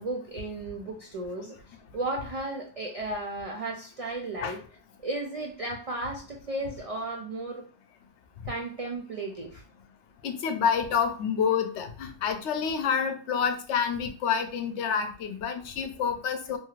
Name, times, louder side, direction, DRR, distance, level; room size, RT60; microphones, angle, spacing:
voice 1, 0.0-4.6 5.0-7.6 8.5-9.6, right 2 dB, 70° right, 1 dB, 0.3 m, -34 dB
voice 2, 10.2-16.6, left 7 dB, 85° left, 7 dB, 0.9 m, -28 dB
2.9 x 2.4 x 3.0 m, 0.42 s
omnidirectional pair, 1.1 m